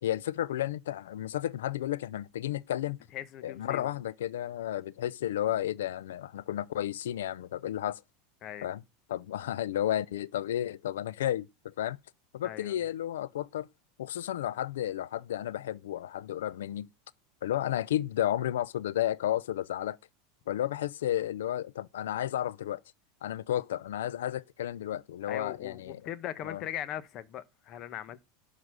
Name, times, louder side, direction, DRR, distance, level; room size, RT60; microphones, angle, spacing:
voice 1, 0.0-3.0 3.4-8.0 8.6-8.8 9.1-12.0 12.3-13.7 14.0-16.9 17.4-20.0 20.5-22.8 23.2-26.0 26.4-26.6, left 12 dB, 85° left, 0.5 m, -32 dB
voice 2, 3.1-3.9 8.4-8.7 12.4-12.8 25.2-28.2, left 11 dB, 45° left, 0.9 m, -39 dB
11.0 x 4.0 x 6.1 m
supercardioid pair, 115°, 0 cm